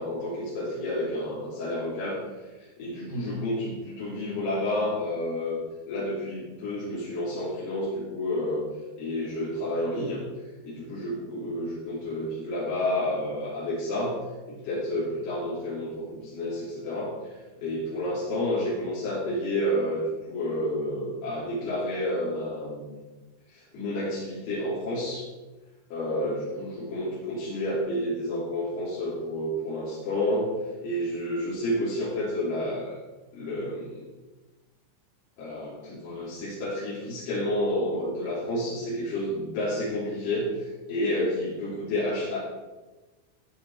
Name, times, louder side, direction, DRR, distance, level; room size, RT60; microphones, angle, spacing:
voice 1, 0.0-2.2 2.6-5.6 5.9-8.7 9.0-10.2 10.6-14.2 14.5-17.3 17.6-22.9 23.5-25.3 25.9-30.5 30.8-33.0 33.3-34.1 35.4-42.4, left 1 dB, 85° left, -8 dB, 5.3 m, -30 dB
15.0 x 9.7 x 4.7 m, 1.2 s
omnidirectional pair, 4.5 m